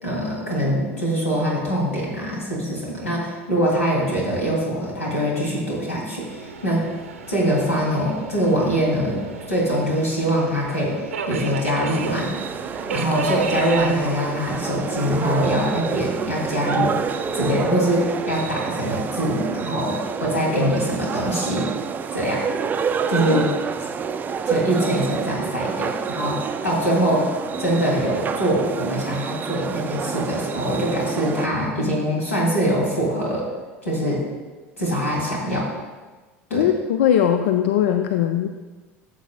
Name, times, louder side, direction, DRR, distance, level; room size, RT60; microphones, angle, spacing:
voice 1, 0.0-6.8 7.3-9.2 9.5-12.3 12.9-16.9 17.3-21.6 22.1-22.4 23.1-23.5 24.4-27.3 27.6-33.5 33.8-34.2 34.8-35.7 36.5-36.7, equal, 80° left, -4 dB, 2.7 m, -23 dB
Subway metro underground, 6.2-18.6, right 5 dB, 75° right, 0.7 m, -34 dB
sound 1, 11.9-31.5, right 6 dB, 25° right, 0.4 m, -28 dB
voice 2, 36.5-38.5, left 10 dB, 60° left, 8 dB, 0.4 m, -20 dB
13.5 x 7.3 x 2.2 m, 1.3 s
figure-of-eight pair, 70°, 7 cm